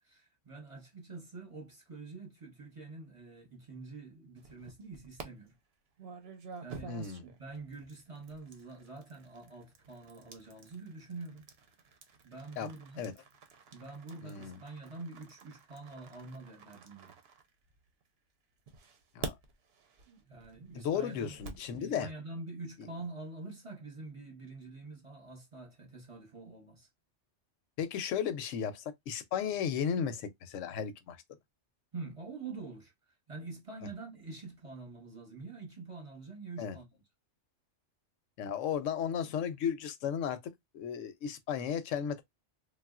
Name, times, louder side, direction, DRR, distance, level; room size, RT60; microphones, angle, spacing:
voice 1, 0.0-5.5 6.6-6.9 7.2-11.5 12.2-13.0 13.7-17.1 20.1-21.4 21.8-26.9 31.9-32.9 33.3-36.9, right 3 dB, 30° right, 0.8 m, -46 dB
sound 1, 4.4-5.3 6.0-18.0 18.7-21.7, right 4 dB, 60° right, 0.8 m, -48 dB
voice 2, 6.9-7.2 12.6-12.7 13.0-13.1 14.2-14.6 19.1-19.3 20.8-22.1 27.8-31.2 36.6-36.7 38.4-42.2, left 8 dB, 85° left, 0.9 m, -34 dB
3.4 x 2.3 x 2.3 m
omnidirectional pair, 1.3 m